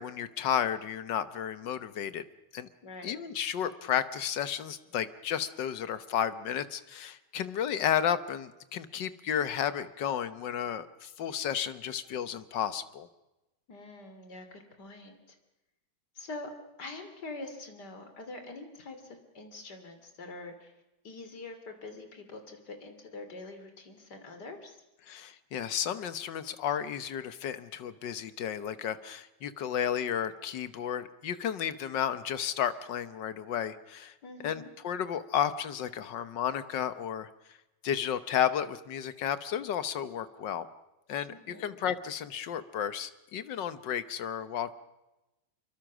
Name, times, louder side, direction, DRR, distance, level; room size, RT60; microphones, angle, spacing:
voice 1, 0.0-2.2 2.5-2.7 3.0-13.1 25.1-34.1 34.4-37.3 37.8-40.7 41.1-44.7, left 9 dB, 85° left, 13 dB, 1.8 m, -32 dB
voice 2, 2.8-3.2 13.7-15.4 16.2-16.5 16.8-20.7 21.0-24.8 34.2-34.7 41.3-41.8, left 2 dB, 70° left, 6 dB, 3.4 m, -45 dB
26.0 x 23.0 x 6.2 m, 0.99 s
omnidirectional pair, 1.9 m